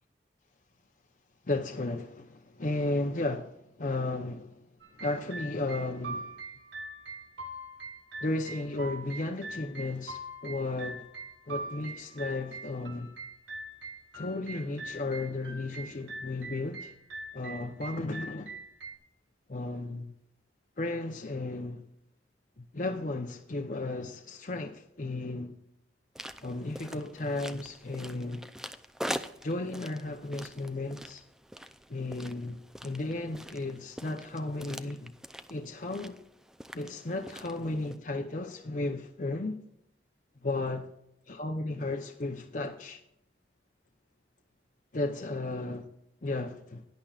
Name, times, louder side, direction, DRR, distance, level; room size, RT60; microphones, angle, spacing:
voice 1, 1.5-4.6 5.0-6.3 8.2-11.1 11.5-13.1 14.1-16.9 17.3-18.5 19.5-20.1 20.8-21.8 22.6-25.6 26.4-28.5 29.4-31.2 31.9-35.1 35.5-36.2 36.7-39.6 40.4-40.9 41.3-43.0 44.9-45.8 46.2-46.8, left 2 dB, 45° left, 0.8 m, -34 dB
sound 1, 4.8-19.0, right 2 dB, 85° right, 1.7 m, -43 dB
sound 2, 26.2-38.0, equal, 5° right, 0.4 m, -44 dB
17.0 x 10.5 x 2.4 m
head